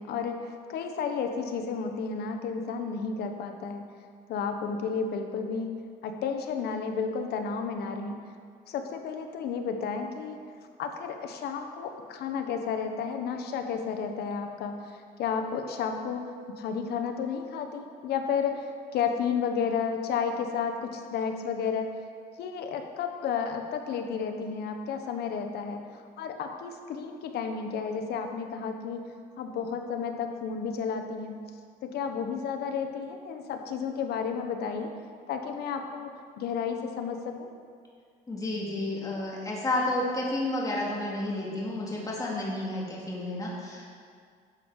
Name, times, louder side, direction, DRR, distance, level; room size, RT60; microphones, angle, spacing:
voice 1, 0.0-3.8 4.3-8.2 8.7-10.4 10.8-16.3 16.6-18.7 18.9-21.9 22.4-25.8 26.2-29.1 29.4-31.4 31.8-34.9 35.3-36.1 36.4-37.5, left 6 dB, 70° left, 5 dB, 1.1 m, -32 dB
voice 2, 38.3-43.9, left 1 dB, 20° left, -4 dB, 2.6 m, -31 dB
12.0 x 7.2 x 4.9 m, 2.1 s
cardioid pair, 110°, 17 cm